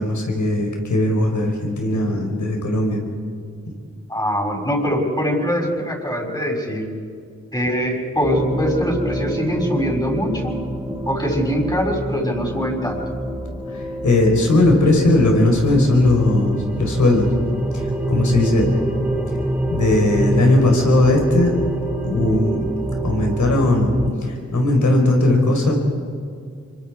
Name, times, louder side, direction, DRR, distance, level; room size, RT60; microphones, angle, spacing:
voice 1, 0.0-3.0 13.7-17.3 17.7-18.7 19.7-21.6 22.0-22.7 23.0-23.9 24.2-25.8, left 2 dB, 75° left, 2 dB, 4.6 m, -18 dB
voice 2, 4.1-6.8 7.5-10.6 11.1-13.0 18.7-18.8, equal, 15° left, 0 dB, 6.5 m, -22 dB
sound 1, 8.2-24.1, right 1 dB, 5° right, 3.2 m, -26 dB
26.5 x 23.0 x 4.9 m, 2.2 s
cardioid pair, 45°, 30 cm